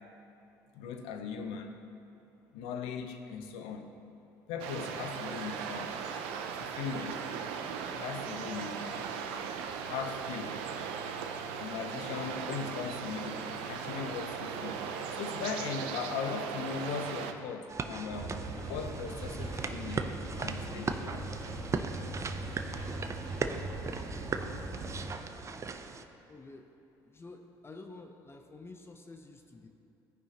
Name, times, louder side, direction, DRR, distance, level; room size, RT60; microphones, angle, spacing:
voice 1, 0.7-1.8 2.5-3.9 4.5-6.0 6.6-7.2 7.9-9.1 9.8-10.6 11.6-14.8 15.1-18.3 18.7-20.1 20.4-21.3, left 6 dB, 80° left, 6 dB, 0.7 m, -39 dB
sound 1, 4.6-17.3, right 6 dB, 80° right, 0.5 m, -38 dB
sound 2, 17.7-26.0, right 4 dB, 30° right, 0.5 m, -38 dB
sound 3, 18.1-25.1, right 2 dB, 45° right, 1.4 m, -40 dB
voice 2, 26.3-26.7 27.0-29.7, left 3 dB, 25° left, 5 dB, 0.6 m, -49 dB
14.0 x 5.5 x 2.9 m, 2.8 s
supercardioid pair, 70°, 10 cm